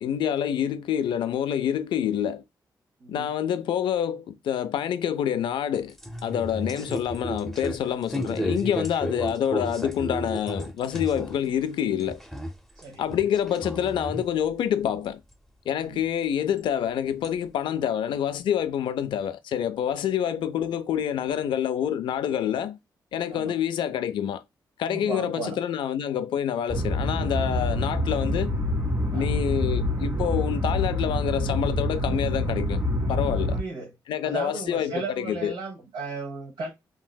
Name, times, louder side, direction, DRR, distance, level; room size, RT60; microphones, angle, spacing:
voice 1, 0.0-2.4 3.1-6.0 6.2-12.2 13.0-15.2 15.7-22.8 23.1-24.4 24.8-28.5 29.1-32.8 33.1-33.6 34.1-35.5, left 9 dB, 80° left, 0.4 m, -27 dB
voice 2, 3.0-3.3 6.7-6.9 12.8-13.0 15.9-16.1 23.3-23.5 24.9-25.6 29.1-29.3 33.5-33.9 34.2-36.7, right 4 dB, 80° right, 1.1 m, -35 dB
sound 1, 5.7-11.5 11.8-12.8 13.1-14.3 15.3-15.4 16.6-16.7 17.2-17.3, equal, 5° left, 0.6 m, -33 dB
sound 2, 26.7-33.6, left 1 dB, 50° right, 1.5 m, -26 dB
3.8 x 2.6 x 2.2 m
cardioid pair, 60°, 8 cm